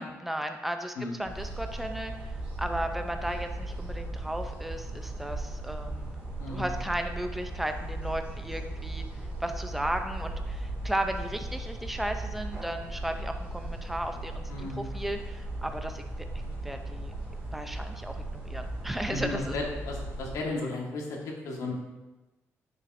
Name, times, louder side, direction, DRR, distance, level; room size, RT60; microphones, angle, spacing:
voice 1, 0.0-6.1 6.5-9.1 9.4-17.1 17.5-19.5, right 1 dB, 5° right, 6 dB, 0.5 m, -35 dB
sound 1, 1.2-20.4, right 2 dB, 20° right, 2.1 m, -37 dB
voice 2, 6.4-6.8 14.5-14.9 19.1-21.7, left 2 dB, 75° left, 0 dB, 1.5 m, -34 dB
10.5 x 6.4 x 2.6 m, 1.1 s
cardioid pair, 170°, 6 cm